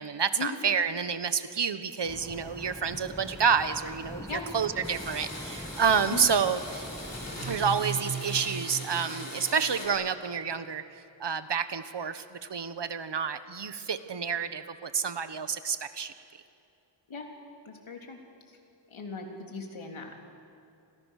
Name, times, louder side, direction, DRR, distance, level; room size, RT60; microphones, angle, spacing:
voice 1, 0.0-6.9 7.5-10.8 11.2-16.1, right 6 dB, 60° right, 11 dB, 1.3 m, -29 dB
sound 1, 2.0-7.8, left 1 dB, 5° left, 1.3 m, -43 dB
Domestic sounds home sounds, 4.8-9.9, left 1 dB, 35° left, 6.8 m, -41 dB
sound 2, 7.3-10.1, right 6 dB, 85° right, 3.0 m, -38 dB
voice 2, 17.7-18.2 18.5-18.6 18.9-20.2, left 4 dB, 90° left, 2 dB, 3.6 m, -38 dB
29.0 x 26.5 x 6.7 m, 2.6 s
wide cardioid pair, 105°, 46 cm